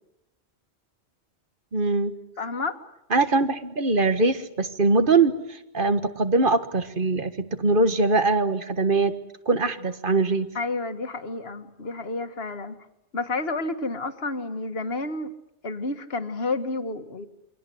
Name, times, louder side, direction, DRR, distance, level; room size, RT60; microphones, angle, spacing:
voice 1, 1.7-2.1 3.1-9.1 9.5-10.5, right 3 dB, 50° right, 10 dB, 1.7 m, -22 dB
voice 2, 2.4-2.8 10.6-12.8 13.1-15.3 15.6-17.3, left 3 dB, 60° left, 8 dB, 1.9 m, -30 dB
28.5 x 24.0 x 7.8 m, 0.86 s
omnidirectional pair, 1.1 m